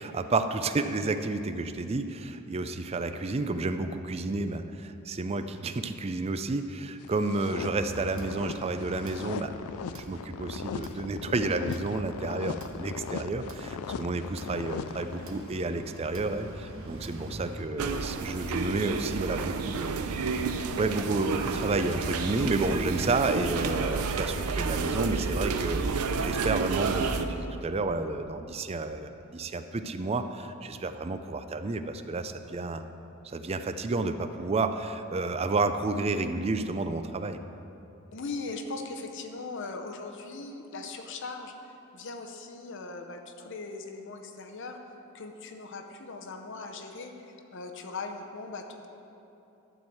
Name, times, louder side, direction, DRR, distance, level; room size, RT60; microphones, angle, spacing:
voice 1, 0.0-9.5 9.9-20.3 20.8-32.8 33.2-37.4, right 3 dB, 25° right, 9 dB, 0.4 m, -31 dB
sound 1, 7.0-15.6, left 7 dB, 75° left, 0.3 m, -39 dB
sound 2, 7.6-17.6, right 2 dB, 65° right, 1.2 m, -44 dB
sound 3, 17.8-27.3, right 4 dB, 80° right, 0.6 m, -30 dB
voice 2, 38.1-44.8 45.1-48.9, left 3 dB, 55° left, 4 dB, 0.7 m, -39 dB
11.5 x 4.5 x 7.8 m, 2.9 s
head